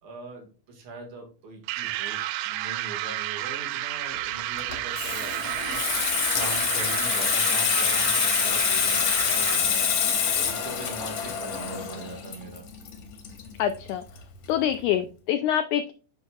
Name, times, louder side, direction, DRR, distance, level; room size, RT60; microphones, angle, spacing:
voice 1, 0.0-5.8 6.3-9.9 10.3-12.6, right 2 dB, 60° right, 1 dB, 2.8 m, -41 dB
sound 1, 1.7-10.0, right 15 dB, 85° right, 2.2 m, -31 dB
Water tap faucet / Sink (filling or washing), 4.6-13.9 14.2-14.4, left 7 dB, 60° left, 1.9 m, -26 dB
voice 2, 13.6-14.0 14.5-15.9, left 10 dB, 85° left, 9 dB, 1.7 m, -25 dB
7.9 x 5.7 x 2.3 m, 0.37 s
omnidirectional pair, 4.0 m